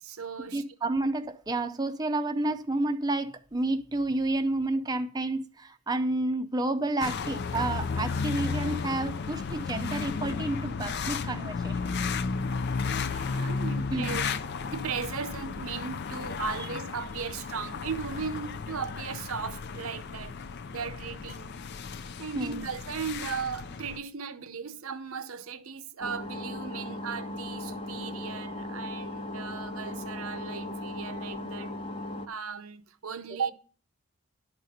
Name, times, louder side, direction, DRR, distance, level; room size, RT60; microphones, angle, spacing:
voice 1, 0.0-0.6 12.9-14.3 14.6-20.3 20.7-21.6 22.2-31.7 32.3-33.5, right 6 dB, 70° right, 0.7 m, -37 dB
voice 2, 0.5-11.8 13.9-14.2 22.4-22.7, right 2 dB, 15° right, 0.5 m, -30 dB
sound 1, 7.0-24.0, left 5 dB, 50° left, 0.4 m, -33 dB
sound 2, 26.0-32.3, left 1 dB, 25° left, 0.8 m, -37 dB
11.5 x 4.2 x 6.4 m
head